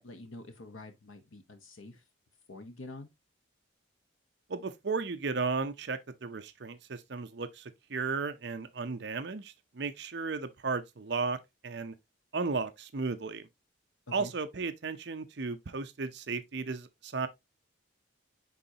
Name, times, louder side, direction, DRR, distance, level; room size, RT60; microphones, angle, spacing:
voice 1, 0.0-2.0 2.5-3.1 14.1-14.3, left 2 dB, 85° left, 1.0 m, -47 dB
voice 2, 4.5-11.4 11.6-11.9 12.3-13.5 14.1-17.3, right 4 dB, 55° right, 0.6 m, -34 dB
9.5 x 3.8 x 2.8 m
head